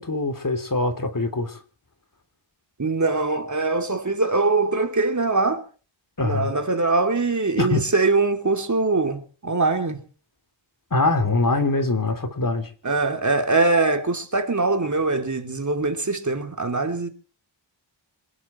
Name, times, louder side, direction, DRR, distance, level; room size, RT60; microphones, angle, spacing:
voice 1, 0.0-1.6 6.2-6.5 7.6-7.9 10.9-12.7, left 2 dB, 40° left, 3.4 m, -23 dB
voice 2, 2.8-5.6 6.2-10.0 12.8-17.1, right 3 dB, 35° right, 3.1 m, -22 dB
27.0 x 11.5 x 4.5 m
wide cardioid pair, 90°, 48 cm